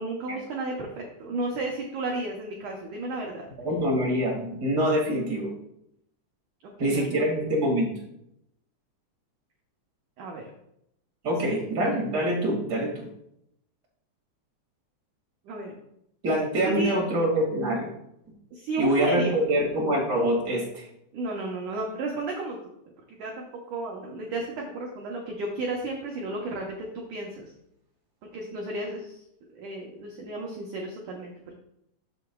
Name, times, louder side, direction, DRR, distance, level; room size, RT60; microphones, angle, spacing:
voice 1, 0.0-3.5 6.8-7.1 10.2-10.4 15.5-15.7 16.8-17.0 18.5-19.3 21.1-22.6 23.1-23.4 23.7-27.5 28.3-29.2 29.5-31.5, right 2 dB, 90° right, -1 dB, 1.7 m, -33 dB
voice 2, 3.6-5.5 6.8-7.9 11.2-13.0 16.2-17.9 18.8-20.9, equal, 35° right, -2 dB, 1.6 m, -25 dB
13.0 x 7.0 x 2.3 m, 0.78 s
omnidirectional pair, 5.2 m